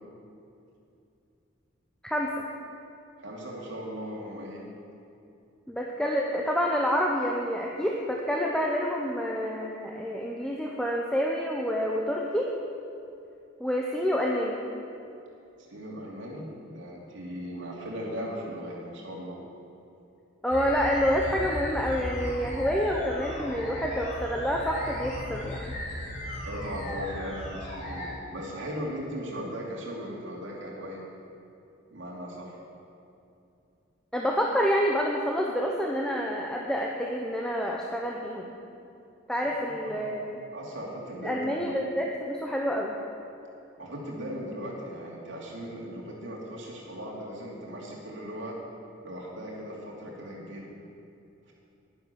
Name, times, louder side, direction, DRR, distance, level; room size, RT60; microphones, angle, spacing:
voice 1, 2.0-2.4 5.7-12.5 13.6-14.6 20.4-25.7 34.1-38.5 39.3-40.4 41.2-42.9, equal, 5° left, -1 dB, 0.7 m, -28 dB
voice 2, 3.2-4.6 15.7-19.4 26.4-31.0 31.9-32.6 39.4-39.5 39.9-40.1 40.5-41.7 43.8-48.6 49.0-50.7, equal, 65° right, -3 dB, 2.7 m, -38 dB
sound 1, 20.5-28.1, left 1 dB, 35° left, 3.1 m, -36 dB
11.0 x 10.0 x 6.9 m, 2.7 s
head